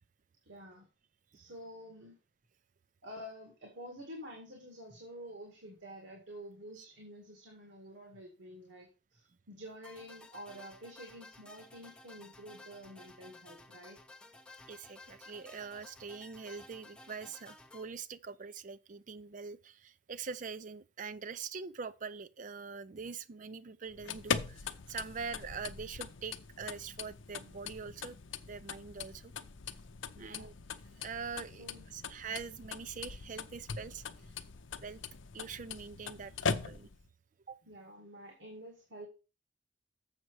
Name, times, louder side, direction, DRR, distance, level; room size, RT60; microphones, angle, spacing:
voice 1, 0.4-0.9 1.3-2.2 3.0-14.0 30.1-30.5 31.6-31.9 37.6-39.1, equal, 70° right, 2.0 m, -49 dB
sound 1, 9.8-17.8, left 2 dB, 5° left, 0.8 m, -55 dB
voice 2, 14.7-28.2 28.4-29.3 30.2-30.5 31.0-31.7 31.9-34.0 34.8-35.0 35.3-36.9 37.5-37.6, right 5 dB, 40° right, 0.4 m, -43 dB
sound 2, 23.9-37.1, left 5 dB, 75° left, 0.6 m, -41 dB
7.3 x 6.5 x 4.8 m
head